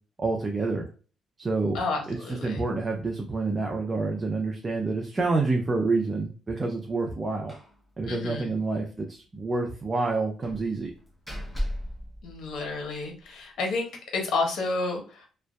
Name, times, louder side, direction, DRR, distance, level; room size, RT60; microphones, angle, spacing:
voice 1, 0.2-0.9 1.4-1.8 2.1-7.5 8.0-10.9, right 3 dB, 25° right, 1 dB, 0.4 m, -28 dB
voice 2, 1.7-2.6 8.1-8.5 12.2-15.3, left 3 dB, 70° left, 2 dB, 0.8 m, -30 dB
Slam, 7.5-7.8 8.1-8.2 8.5-8.6 10.4-13.0, equal, 10° left, 0.7 m, -36 dB
2.5 x 2.1 x 2.3 m, 0.38 s
cardioid pair, 90°, 0 cm